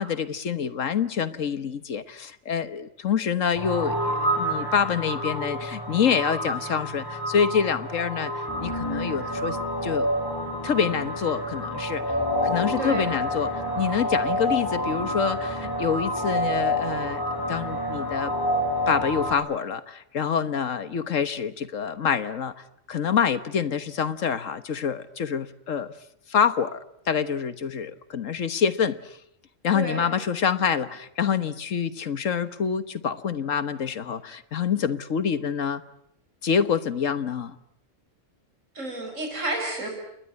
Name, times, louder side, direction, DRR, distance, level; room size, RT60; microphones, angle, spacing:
voice 1, 0.0-9.6 9.8-10.1 10.6-12.1 12.4-18.3 18.9-25.9 26.3-29.2 29.6-35.8 36.4-37.5, left 7 dB, 80° left, 13 dB, 1.7 m, -26 dB
sound 1, 3.6-19.3, equal, 15° left, 5.1 m, -28 dB
voice 2, 12.8-13.1 29.7-30.2 38.7-39.9, right 2 dB, 80° right, 2 dB, 6.1 m, -31 dB
29.0 x 20.5 x 9.6 m, 0.72 s
omnidirectional pair, 1.3 m